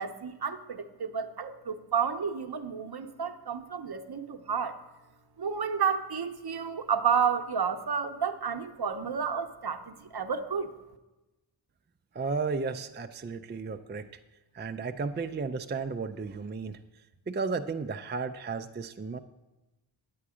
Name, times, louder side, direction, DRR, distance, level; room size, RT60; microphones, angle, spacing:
voice 1, 0.0-4.8 5.4-10.7, right 6 dB, 55° right, 8 dB, 0.8 m, -31 dB
voice 2, 12.1-14.2 14.5-16.8 17.3-19.2, right 4 dB, 25° right, 7 dB, 0.4 m, -34 dB
9.4 x 8.6 x 4.9 m, 1.1 s
wide cardioid pair, 70°, 46 cm